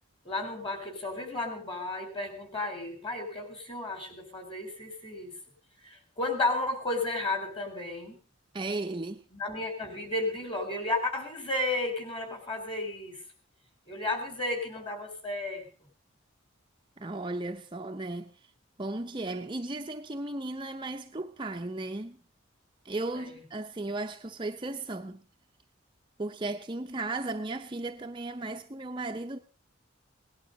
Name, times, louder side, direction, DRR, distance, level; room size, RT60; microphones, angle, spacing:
voice 1, 0.2-5.4 5.8-8.2 9.3-13.2 13.9-15.7 23.1-23.4, left 2 dB, 25° left, 3.9 m, -33 dB
voice 2, 8.5-9.2 17.0-18.3 18.8-22.2 22.8-25.2 26.2-29.4, right 2 dB, 25° right, 0.6 m, -35 dB
18.5 x 11.0 x 5.3 m
head